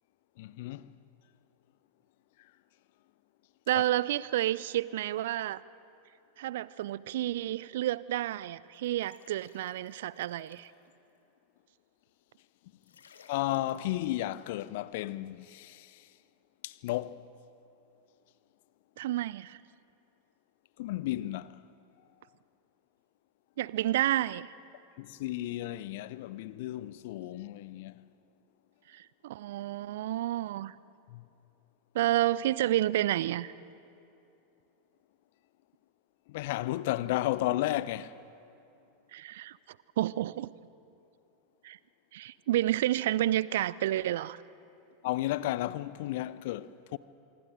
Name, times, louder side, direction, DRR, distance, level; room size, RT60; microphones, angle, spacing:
voice 1, 0.4-0.9 3.7-3.8 13.3-16.0 16.6-17.2 20.8-21.6 25.0-28.0 31.1-31.2 36.3-38.1 45.0-47.0, left 15 dB, 55° left, 0.6 m, -33 dB
voice 2, 3.7-5.6 6.4-10.7 19.0-19.6 23.6-24.5 28.9-30.7 31.9-33.5 39.1-39.6 40.0-40.5 41.6-41.8 42.1-44.4, right 14 dB, 60° right, 0.4 m, -30 dB
sound 1, 8.7-10.9 12.8-13.9, left 6 dB, 75° left, 1.4 m, -58 dB
26.0 x 23.0 x 5.0 m
figure-of-eight pair, 85°, 0 cm